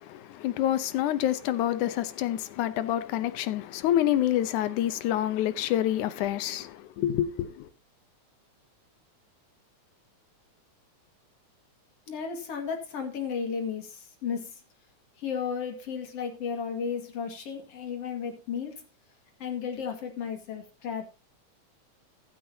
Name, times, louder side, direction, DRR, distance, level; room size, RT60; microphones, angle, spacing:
voice 1, 0.1-6.7 7.0-7.5, left 12 dB, 90° left, 2.3 m, -27 dB
voice 2, 12.1-14.5 15.2-18.7 19.4-21.0, left 6 dB, 55° left, 2.9 m, -34 dB
14.5 x 11.5 x 2.8 m
omnidirectional pair, 3.4 m